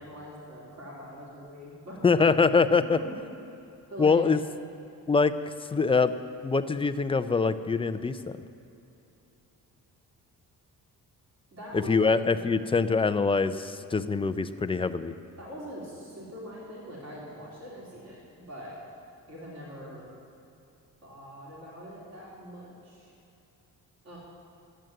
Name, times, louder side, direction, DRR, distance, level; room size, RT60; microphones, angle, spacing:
voice 1, 0.0-2.1 2.8-3.1 3.9-4.2 11.5-12.6 15.4-18.7 19.3-20.0 21.0-23.1 24.0-24.2, equal, 50° right, -5 dB, 3.8 m, -43 dB
voice 2, 2.0-3.0 4.0-4.4 5.1-5.3 5.7-6.1 6.4-8.2 11.7-15.1, left 4 dB, 15° left, 11 dB, 0.4 m, -24 dB
12.0 x 9.2 x 7.6 m, 2.8 s
cardioid pair, 135°, 34 cm